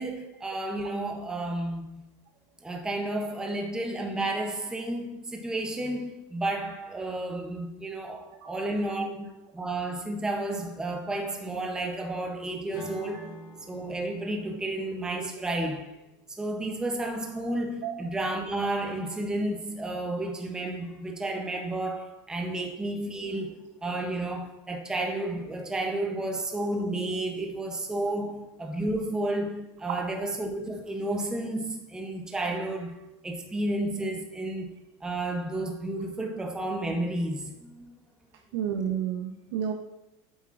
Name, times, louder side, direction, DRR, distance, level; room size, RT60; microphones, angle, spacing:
voice 1, 0.0-2.0 2.6-13.3 13.7-15.9 16.3-34.7 35.0-37.9, right 1 dB, 5° right, 0.6 m, -32 dB
Acoustic guitar / Strum, 12.7-16.8, left 1 dB, 25° left, 2.2 m, -48 dB
voice 2, 38.5-39.7, right 8 dB, 75° right, 0.7 m, -30 dB
8.3 x 7.3 x 2.4 m
cardioid pair, 165°, 14 cm